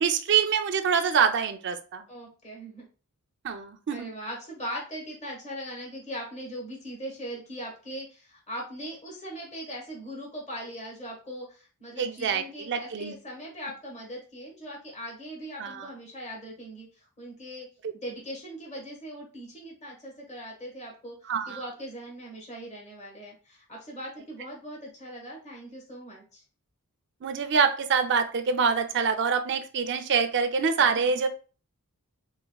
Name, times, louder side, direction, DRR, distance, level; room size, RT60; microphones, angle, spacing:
voice 1, 0.0-2.0 3.4-4.1 12.0-13.1 15.6-15.9 21.3-21.6 27.2-31.3, right 6 dB, 55° right, 8 dB, 0.5 m, -25 dB
voice 2, 2.1-2.8 3.9-17.7 17.9-26.4 30.8-31.2, equal, 30° left, -2 dB, 1.4 m, -40 dB
3.9 x 3.8 x 2.3 m, 0.37 s
head